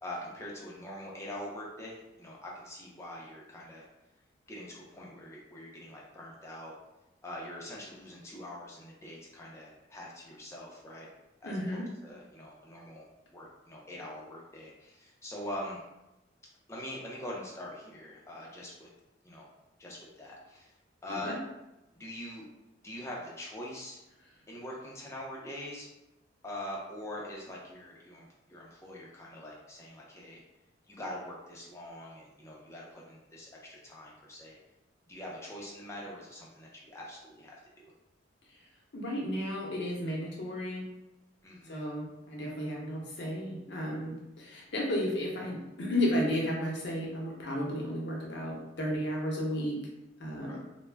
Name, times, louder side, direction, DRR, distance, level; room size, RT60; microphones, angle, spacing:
voice 1, 0.0-3.9 4.5-6.7 7.2-11.1 11.4-13.1 13.3-15.8 16.7-18.9 19.2-19.5 19.8-20.7 21.0-21.4 21.9-22.4 22.8-24.0 24.5-25.9 26.4-30.4 30.9-34.6 35.1-37.9 41.4-41.8 50.5-50.6, left 1 dB, 15° left, -4 dB, 0.5 m, -43 dB
voice 2, 11.4-11.8 21.1-21.4 38.5-38.6 38.9-40.8 41.7-49.8 50.2-50.6, equal, 60° left, -2 dB, 0.7 m, -33 dB
2.2 x 2.0 x 3.2 m, 0.96 s
head